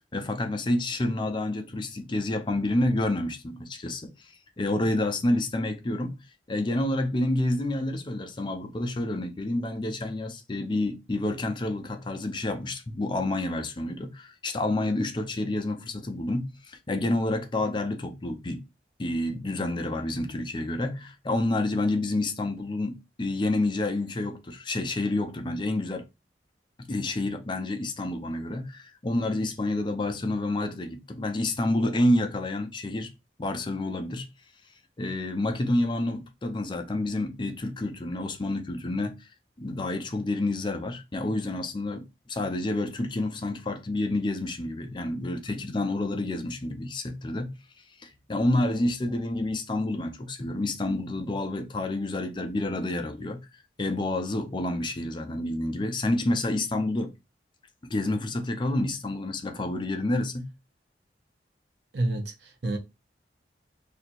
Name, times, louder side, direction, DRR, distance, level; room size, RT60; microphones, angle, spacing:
voice 1, 0.1-18.6 19.0-26.1 26.9-33.1 33.4-34.3 35.0-39.1 39.6-47.6 48.0-53.4 53.8-57.1 57.8-60.5, left 2 dB, 25° left, 0.5 m, -29 dB
voice 2, 61.9-62.8, right 2 dB, 75° right, 0.7 m, -29 dB
2.7 x 2.4 x 4.1 m
head